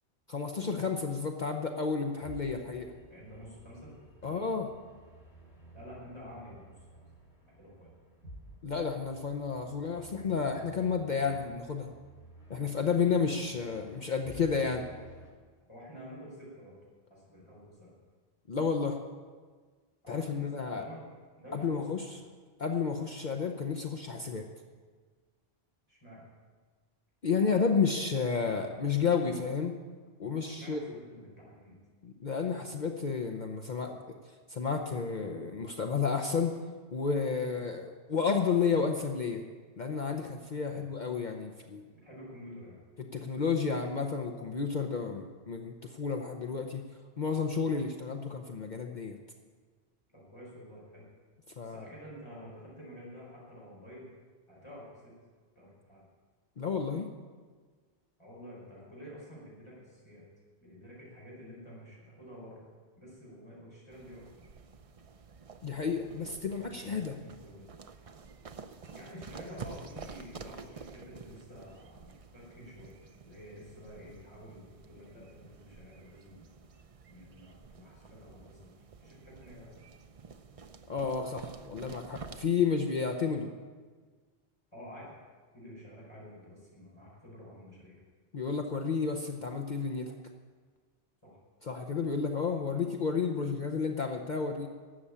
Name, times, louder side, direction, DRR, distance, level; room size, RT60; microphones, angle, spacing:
voice 1, 0.3-2.9 4.2-4.7 8.6-11.9 12.5-14.9 18.5-19.0 20.1-20.9 21.5-22.1 22.6-24.5 27.2-29.8 30.2-30.8 32.0-36.6 36.9-39.4 39.8-41.8 43.1-46.8 47.2-49.2 51.6-51.9 56.6-57.1 65.6-67.2 80.9-83.5 88.3-90.1 91.6-94.7, left 5 dB, 50° left, 4 dB, 0.9 m, -31 dB
sound 1, 1.9-15.3, right 1 dB, 80° left, 3.4 m, -54 dB
voice 2, 3.1-4.0 4.2-4.3 5.7-7.0 7.6-7.9 15.7-16.7 17.1-17.9 20.0-21.1 21.4-22.2 25.9-26.2 30.4-31.8 40.6-40.8 41.9-42.8 50.1-51.0 51.6-54.1 54.5-55.1 55.5-56.0 58.2-60.2 60.6-62.6 63.0-64.3 66.1-67.7 68.9-73.0 73.2-76.6 77.1-78.7 79.0-79.7 84.7-85.1 85.5-88.0 91.2-91.4, equal, 25° left, -6 dB, 4.9 m, -49 dB
sound 2, 63.9-82.5, right 5 dB, 40° right, 0.6 m, -50 dB
12.5 x 7.7 x 8.5 m, 1.5 s
omnidirectional pair, 1.1 m